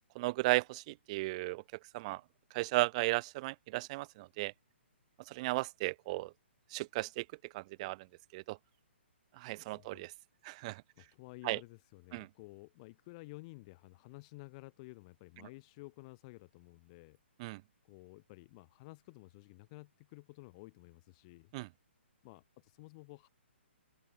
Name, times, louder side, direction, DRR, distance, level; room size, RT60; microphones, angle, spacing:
voice 1, 0.1-1.6 1.9-2.2 2.5-4.5 5.3-6.3 6.7-7.2 7.5-8.0 8.3-8.6 9.4-10.1 10.4-10.8 11.4-11.6 12.1-12.3 17.4-17.6 21.5-21.7, right 21 dB, 35° right, 1.4 m, -35 dB
voice 2, 9.7-10.0 11.0-17.2 17.8-21.5 22.2-23.3, left 24 dB, 30° left, 3.2 m, -53 dB
figure-of-eight pair, 125°, 6 cm